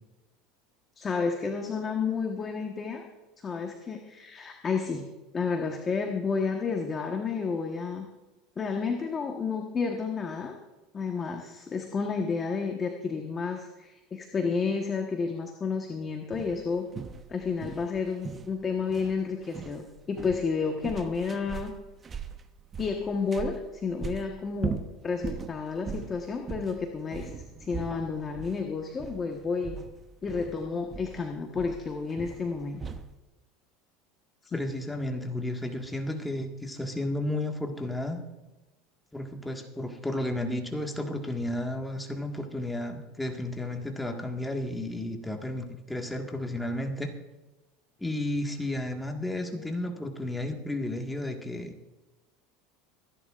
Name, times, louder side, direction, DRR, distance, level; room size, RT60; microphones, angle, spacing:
voice 1, 1.0-3.0 3.4-5.0 5.3-8.1 8.6-10.6 10.9-16.9 17.3-21.7 22.8-27.3 27.6-29.8 30.2-32.8 34.4-34.6, left 5 dB, 30° left, 3 dB, 1.3 m, -31 dB
sound 1, 16.3-33.2, right 6 dB, 25° right, 0.9 m, -40 dB
voice 2, 34.5-38.2 39.1-47.1 48.0-51.7, left 1 dB, 5° left, 2 dB, 1.8 m, -33 dB
24.0 x 11.0 x 2.5 m, 1.1 s
supercardioid pair, 105°, 0 cm